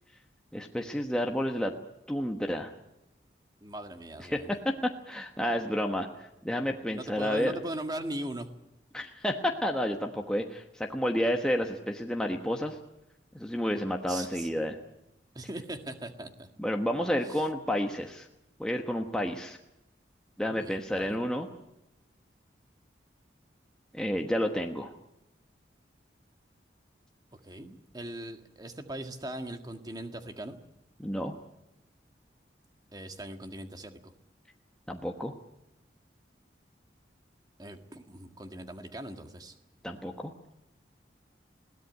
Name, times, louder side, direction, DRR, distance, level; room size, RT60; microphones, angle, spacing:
voice 1, 0.5-1.7 2.1-2.7 4.3-7.6 8.9-12.8 13.3-14.8 16.6-18.3 18.6-19.6 20.4-21.5 23.9-24.9 31.0-31.3 34.9-35.3 39.8-40.3, equal, 5° left, 2 dB, 1.1 m, -30 dB
voice 2, 3.6-4.6 6.9-8.5 14.1-14.7 15.4-16.5 17.2-17.4 20.5-21.2 27.4-30.6 32.9-34.1 37.6-39.6, right 1 dB, 20° right, 7 dB, 1.7 m, -40 dB
21.5 x 17.0 x 9.3 m, 0.89 s
head